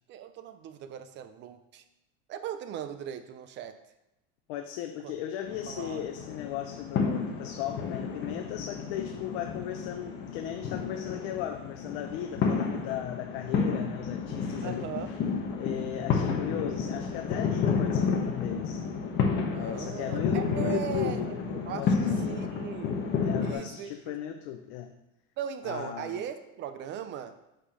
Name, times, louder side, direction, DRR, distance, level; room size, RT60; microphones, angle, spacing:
voice 1, 0.1-1.8 2.3-3.8 5.0-5.1 5.7-6.0 14.6-15.1 19.5-22.0 22.3-22.9 23.4-24.2 25.4-27.3, right 9 dB, 35° right, 9 dB, 0.5 m, -38 dB
voice 2, 4.5-14.9 15.6-18.9 19.5-21.3 21.7-22.5 23.2-24.9 25.6-26.2, left 10 dB, 70° left, 5 dB, 0.6 m, -37 dB
sound 1, 5.5-23.5, left 5 dB, 35° left, 1.0 m, -31 dB
5.7 x 5.1 x 4.9 m, 0.91 s
cardioid pair, 155°, 32 cm